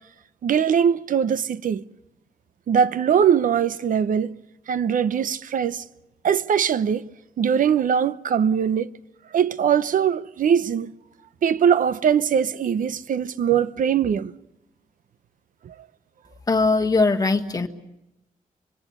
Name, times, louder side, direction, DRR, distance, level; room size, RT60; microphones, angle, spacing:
voice 1, 0.4-1.8 2.7-4.3 4.7-5.8 6.2-7.0 7.4-8.9 9.3-10.9 11.4-14.3 15.6-15.7, right 8 dB, 70° right, 0.8 m, -21 dB
voice 2, 16.5-17.7, left 3 dB, 25° left, 1.5 m, -20 dB
26.0 x 24.0 x 7.0 m
wide cardioid pair, 165°, 14 cm